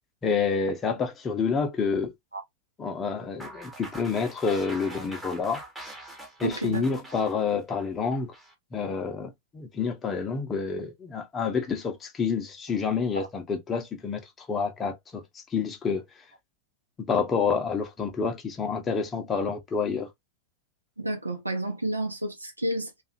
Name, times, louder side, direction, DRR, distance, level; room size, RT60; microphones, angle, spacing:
voice 1, 0.2-2.1 2.8-5.6 6.4-8.3 8.7-16.0 17.1-20.1, left 5 dB, 20° left, 0.8 m, -28 dB
sound 1, 3.4-8.5, right 1 dB, 5° right, 0.9 m, -43 dB
voice 2, 6.4-6.9 13.2-13.3 21.0-23.0, right 1 dB, 85° right, 0.8 m, -30 dB
2.8 x 2.5 x 2.5 m
figure-of-eight pair, 90°, 0 cm